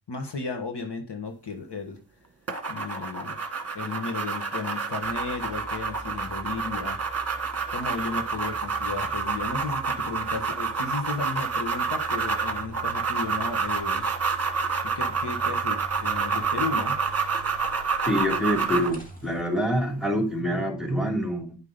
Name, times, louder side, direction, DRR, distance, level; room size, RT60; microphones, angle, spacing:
voice 1, 0.1-2.0 2.7-3.5 3.7-7.0 7.7-14.1 14.8-17.0, left 4 dB, 60° left, 5 dB, 1.6 m, -34 dB
sound 1, 2.5-19.0, right 5 dB, 30° right, 1.6 m, -28 dB
sound 2, 5.0-19.4, right 2 dB, 20° left, 2.3 m, -44 dB
voice 2, 18.1-21.6, equal, ahead, 3 dB, 2.8 m, -26 dB
10.5 x 5.7 x 5.2 m, 0.33 s
wide cardioid pair, 80°, 46 cm